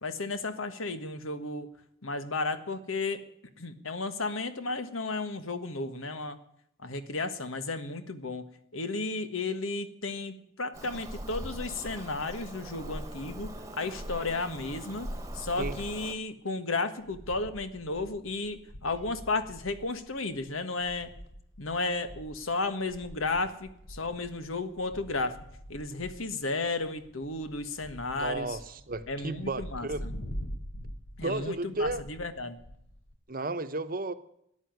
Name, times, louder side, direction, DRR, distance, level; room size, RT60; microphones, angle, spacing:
voice 1, 0.0-1.7 2.0-3.2 3.6-6.4 6.8-8.4 8.7-21.1 21.6-25.4 25.7-28.6 29.1-30.1 31.2-32.6, left 3 dB, 85° left, 1.6 m, -33 dB
Bird vocalization bird call bird song, 10.7-16.1, right 1 dB, 15° right, 1.3 m, -40 dB
sound 1, 14.9-16.1 16.5-16.6 16.9-33.2, equal, 65° left, 1.3 m, -46 dB
voice 2, 28.2-30.0 31.2-32.0 33.3-34.1, right 2 dB, 45° right, 1.0 m, -33 dB
14.0 x 9.9 x 9.6 m
head